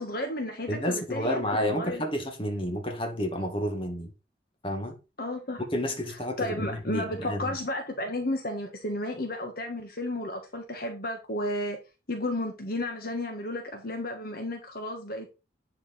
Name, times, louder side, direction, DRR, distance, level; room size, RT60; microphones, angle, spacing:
voice 1, 0.0-2.0 5.2-5.6 6.4-11.8 12.1-15.3, left 1 dB, 50° left, 1.6 m, -33 dB
voice 2, 0.7-4.1 4.6-4.9 5.7-7.6, equal, 30° left, 2.1 m, -30 dB
10.5 x 5.0 x 4.4 m
head